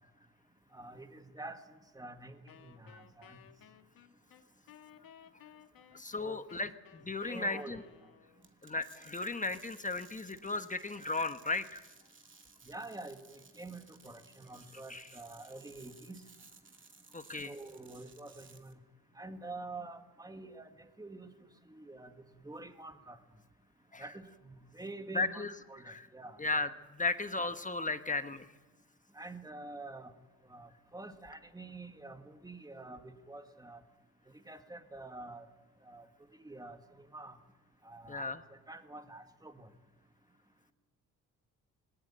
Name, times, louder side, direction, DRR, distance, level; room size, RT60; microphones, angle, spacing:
voice 1, 0.7-1.6 1.9-3.4 6.2-6.4 7.2-7.8 12.6-16.2 17.4-18.8 19.2-21.3 21.7-23.2 24.0-25.4 25.7-26.4 29.1-30.1 30.4-33.8 34.5-35.5 35.9-36.1 36.4-37.4 37.8-38.3 38.7-39.7, right 2 dB, 10° right, 7 dB, 2.0 m, -47 dB
Wind instrument woodwind instrument, 2.5-8.5, left 9 dB, 70° left, 1.8 m, -58 dB
voice 2, 5.9-7.8 8.6-11.8 14.9-15.0 17.1-17.5 23.9-24.1 25.1-25.5 25.8-26.1 26.4-28.5 38.1-38.4, left 3 dB, 20° left, 9 dB, 1.2 m, -35 dB
sound 1, 8.4-18.7, right 4 dB, 30° right, 2.4 m, -59 dB
20.5 x 18.0 x 8.9 m, 1.2 s
cardioid pair, 80°, 37 cm